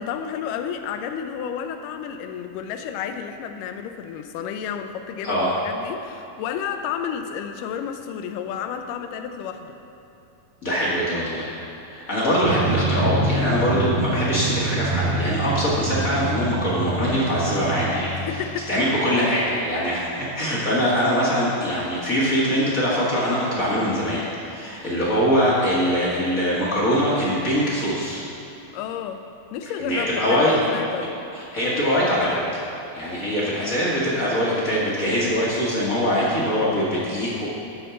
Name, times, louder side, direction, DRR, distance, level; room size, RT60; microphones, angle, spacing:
voice 1, 0.0-9.8 18.1-18.7 25.1-25.3 28.7-29.2 29.5-31.2 33.1-33.2, left 8 dB, 80° left, 7 dB, 2.1 m, -31 dB
voice 2, 5.2-5.6 10.6-11.5 11.9-18.4 18.7-28.2 29.8-30.6 31.3-32.4 32.9-37.5, equal, 45° left, -7 dB, 1.0 m, -23 dB
Drum, 12.4-18.9, right 2 dB, 85° right, 2.3 m, -26 dB
13.0 x 4.4 x 6.9 m, 2.8 s
omnidirectional pair, 3.9 m